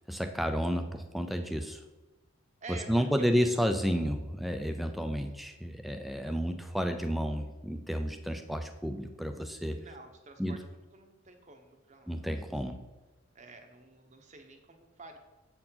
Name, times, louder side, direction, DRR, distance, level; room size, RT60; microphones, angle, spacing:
voice 1, 0.1-1.8 2.9-9.8 10.4-10.6 12.1-12.8, equal, ahead, 6 dB, 0.4 m, -31 dB
voice 2, 2.6-3.6 6.3-6.4 9.7-12.2 12.7-12.8 13.3-15.2, right 3 dB, 30° right, 5 dB, 0.8 m, -50 dB
7.7 x 4.6 x 5.6 m, 1.1 s
head